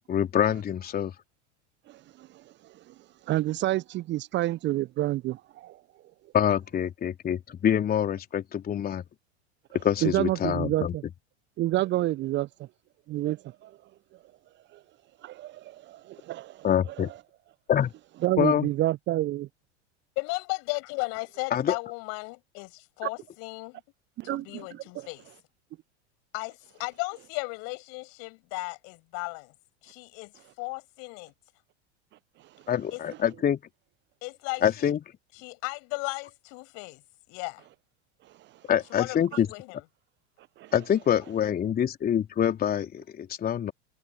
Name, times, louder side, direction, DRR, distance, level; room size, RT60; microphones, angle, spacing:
voice 1, 0.1-1.1 6.3-9.0 9.8-10.9 16.6-17.1 17.7-17.9 18.4-18.7 21.5-21.8 32.7-33.6 34.6-35.0 38.7-39.5 40.7-43.7, left 9 dB, 25° left, 3.7 m, -25 dB
voice 2, 1.9-2.3 3.3-5.8 10.0-11.0 11.6-12.5 13.1-13.7 15.2-16.9 18.2-19.5 24.2-24.6 24.9-25.1 40.6-40.7, right 15 dB, 30° right, 1.1 m, -29 dB
voice 3, 20.2-23.8 24.2-25.3 26.3-29.5 29.8-30.3 30.6-31.3 32.9-33.0 34.2-34.9 35.4-37.0 37.3-37.6 38.9-39.8, left 33 dB, 45° left, 6.8 m, -35 dB
figure-of-eight pair, 85°, 34 cm